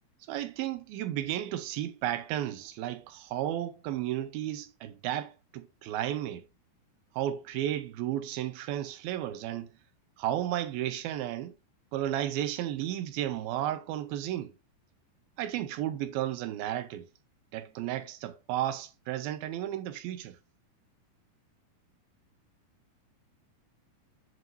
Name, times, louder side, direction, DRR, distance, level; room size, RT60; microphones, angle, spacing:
voice 1, 0.3-6.4 7.1-9.7 10.2-11.5 11.9-14.5 15.4-17.1 17.5-20.4, right 12 dB, 80° right, 2.7 m, -33 dB
9.3 x 5.3 x 2.6 m
omnidirectional pair, 4.3 m